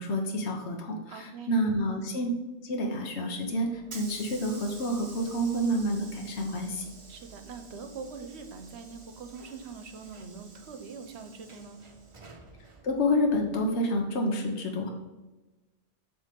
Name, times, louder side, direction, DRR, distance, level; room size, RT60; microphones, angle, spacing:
voice 1, 0.0-2.3 2.6-6.9 12.8-14.9, equal, 75° left, 2 dB, 1.2 m, -29 dB
voice 2, 1.1-1.6 7.1-11.8, right 5 dB, 75° right, 7 dB, 1.0 m, -43 dB
Hiss / Sliding door, 3.3-14.0, right 4 dB, 35° right, 0.7 m, -50 dB
7.4 x 3.4 x 5.1 m, 1.1 s
omnidirectional pair, 1.1 m